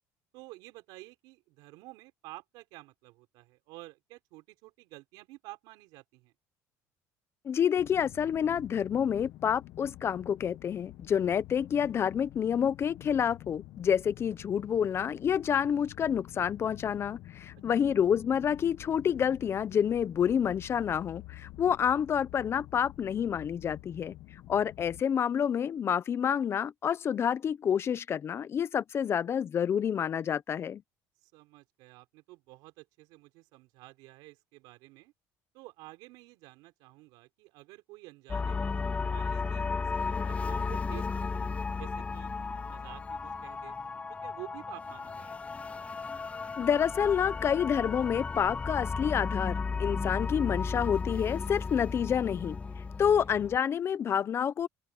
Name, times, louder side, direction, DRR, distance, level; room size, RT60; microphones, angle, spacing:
voice 1, 0.3-6.3 17.9-18.0 31.2-35.1 35.5-38.8 39.1-42.3 42.7-43.8 44.1-45.5 52.9-53.3, right 21 dB, 85° right, 4.5 m, -51 dB
voice 2, 7.4-24.1 24.5-30.8 46.6-52.6 53.0-54.7, left 8 dB, 35° left, 0.8 m, -28 dB
sound 1, 7.8-25.0, left 16 dB, 65° left, 1.3 m, -49 dB
sound 2, 38.3-53.6, left 4 dB, 20° left, 0.4 m, -34 dB
open air
cardioid pair, 120°, 7 cm